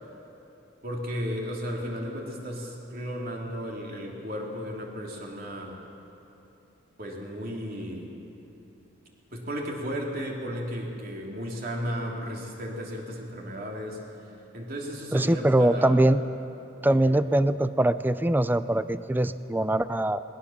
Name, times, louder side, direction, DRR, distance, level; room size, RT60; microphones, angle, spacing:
voice 1, 0.8-5.8 7.0-8.1 9.3-14.0 14.5-16.1 16.9-17.1, equal, 50° right, -1 dB, 3.3 m, -34 dB
voice 2, 15.1-16.2 16.8-20.2, right 1 dB, 10° right, 13 dB, 0.5 m, -22 dB
20.5 x 20.0 x 7.3 m, 2.9 s
head